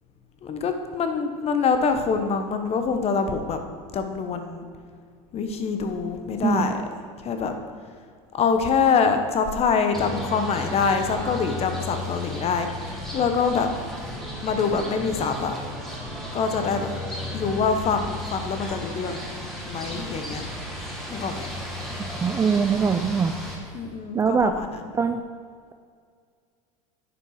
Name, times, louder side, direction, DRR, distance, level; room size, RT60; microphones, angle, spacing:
voice 1, 0.4-3.6 3.9-4.7 5.3-6.8 7.2-7.5 8.3-12.7 13.1-13.7 14.4-15.5 16.3-16.9 17.3-19.3 19.7-20.5 21.1-21.5 23.7-24.8, left 5 dB, 35° left, 7 dB, 1.0 m, -25 dB
sound 1, 9.9-23.6, left 1 dB, ahead, 1.7 m, -34 dB
voice 2, 22.1-23.3 24.1-24.5 25.0-25.2, right 6 dB, 15° right, 8 dB, 0.3 m, -22 dB
9.8 x 5.4 x 4.8 m, 2.1 s
hypercardioid pair, 105°, 18 cm